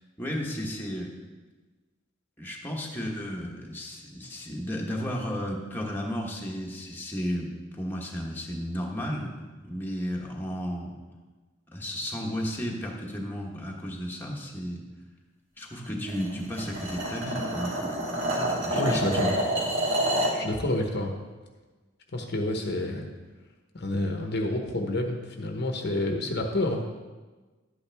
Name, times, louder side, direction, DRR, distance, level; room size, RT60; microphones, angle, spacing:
voice 1, 0.2-1.1 2.4-9.3 9.6-11.0 11.7-14.8 15.6-17.9 18.6-19.5, equal, 10° left, -2 dB, 1.2 m, -33 dB
sound 1, 16.1-20.4, right 1 dB, 65° right, 1.9 m, -28 dB
voice 2, 18.7-19.3 20.3-21.1 22.1-23.0 23.7-26.8, left 1 dB, 55° left, 3 dB, 1.0 m, -28 dB
11.5 x 8.6 x 3.5 m, 1.3 s
head